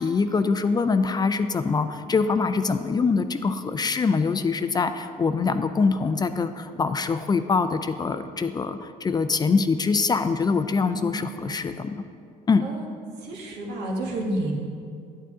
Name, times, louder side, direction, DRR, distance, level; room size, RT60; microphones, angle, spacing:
voice 1, 0.0-11.9 12.5-12.7, left 4 dB, 25° left, 10 dB, 0.4 m, -24 dB
voice 2, 10.9-11.6 12.6-12.9 13.2-14.6, right 1 dB, 90° right, -1 dB, 1.6 m, -30 dB
9.3 x 8.9 x 3.7 m, 2.4 s
cardioid pair, 110°, 17 cm